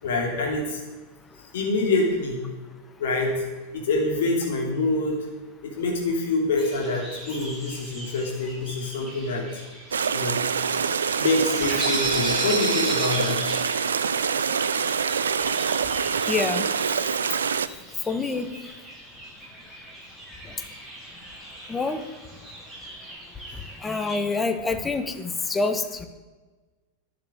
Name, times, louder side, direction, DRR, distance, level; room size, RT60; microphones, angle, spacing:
voice 1, 0.0-0.8 1.4-2.4 3.0-3.3 3.7-5.2 5.6-9.4 10.1-10.4 11.2-13.4, left 2 dB, 60° left, 0 dB, 2.9 m, -26 dB
sound 1, 6.6-24.2, right 1 dB, 5° right, 5.5 m, -37 dB
sound 2, 9.9-17.7, right 6 dB, 70° right, 0.6 m, -25 dB
voice 2, 16.3-16.7 18.1-18.5 20.5-20.6 21.7-22.1 23.8-26.1, left 3 dB, 15° left, 8 dB, 1.4 m, -26 dB
11.5 x 8.9 x 8.7 m, 1.3 s
figure-of-eight pair, 90°, 0 cm